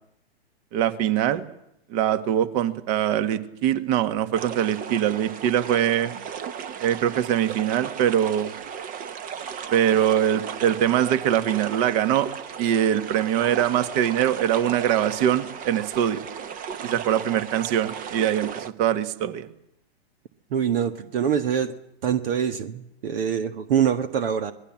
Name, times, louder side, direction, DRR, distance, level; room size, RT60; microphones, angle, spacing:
voice 1, 0.7-1.4 1.9-6.1 6.8-8.5 9.7-12.3 12.6-16.2 16.8-19.5, right 10 dB, 40° right, 11 dB, 1.9 m, -23 dB
sound 1, 4.3-18.7, right 7 dB, 25° right, 1.1 m, -36 dB
voice 2, 20.5-21.7 22.0-24.5, right 8 dB, 60° right, 10 dB, 1.7 m, -24 dB
26.5 x 20.5 x 7.5 m, 0.78 s
hypercardioid pair, 120°, 31 cm